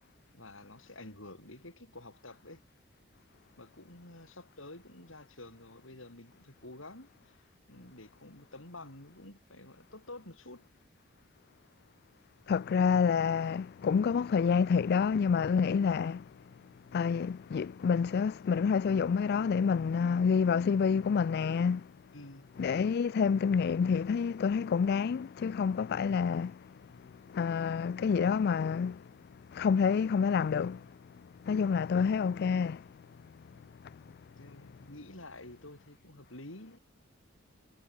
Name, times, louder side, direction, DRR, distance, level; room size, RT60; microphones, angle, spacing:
voice 1, 0.3-2.6 3.6-7.4 7.7-10.7 22.1-22.5 34.1-36.8, left 2 dB, 70° left, 6.8 m, -49 dB
voice 2, 12.5-16.2 16.9-21.9 22.6-26.6 27.3-29.0 29.5-30.8 31.4-32.8, left 6 dB, 55° left, 0.3 m, -28 dB
head